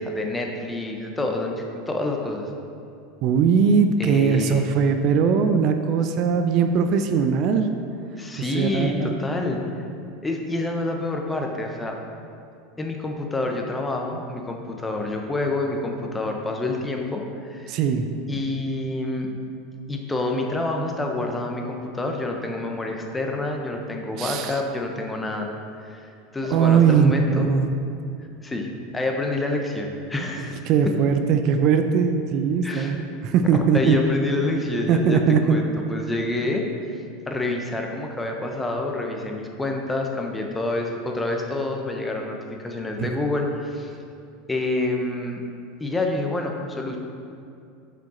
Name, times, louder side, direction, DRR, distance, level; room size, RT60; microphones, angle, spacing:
voice 1, 0.0-2.5 4.0-4.7 8.2-9.6 10.2-12.0 12.8-17.7 18.3-19.3 19.9-25.5 25.8-26.1 26.3-27.5 28.4-30.9 32.6-33.0 33.7-35.2 35.5-36.7 37.3-43.9 44.5-45.4 45.8-47.0, left 2 dB, 10° left, 2 dB, 0.8 m, -27 dB
voice 2, 3.2-7.7 8.5-9.1 17.7-18.1 24.2-24.5 26.5-27.7 30.4-34.0 34.9-35.6 43.0-43.1, right 6 dB, 50° right, 7 dB, 0.5 m, -20 dB
7.5 x 5.1 x 4.3 m, 2.5 s
supercardioid pair, 120°, 0 cm